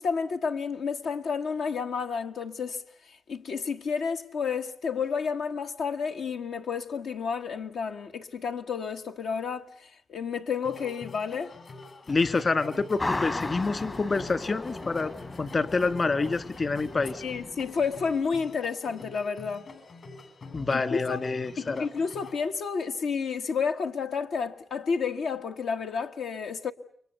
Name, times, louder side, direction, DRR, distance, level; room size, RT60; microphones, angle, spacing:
voice 1, 0.0-2.8 3.3-11.5 17.2-19.7 20.7-21.2 21.6-26.7, left 5 dB, 85° left, 1.5 m, -31 dB
sound 1, 10.6-22.5, left 3 dB, 65° left, 7.6 m, -46 dB
voice 2, 12.1-15.1 15.4-17.2 20.5-21.9, left 3 dB, 50° left, 2.3 m, -27 dB
sound 2, 13.0-18.3, left 2 dB, 35° left, 1.1 m, -37 dB
30.0 x 23.5 x 8.2 m
cardioid pair, 65°, 0 cm